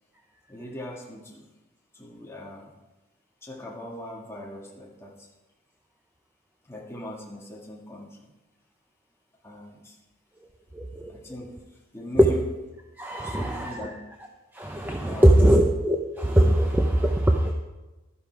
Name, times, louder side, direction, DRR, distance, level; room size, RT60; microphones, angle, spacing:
voice 1, 0.5-1.4 1.9-2.7 3.4-5.3 6.7-8.3 9.4-10.0 11.1-11.6 11.9-12.4 13.2-14.0 15.1-15.6, left 1 dB, 10° left, -2 dB, 1.9 m, -40 dB
voice 2, 10.7-11.1 12.2-12.3 13.0-13.9 14.5-17.5, right 1 dB, 10° right, 2 dB, 0.6 m, -21 dB
12.5 x 10.5 x 4.7 m, 1.1 s
head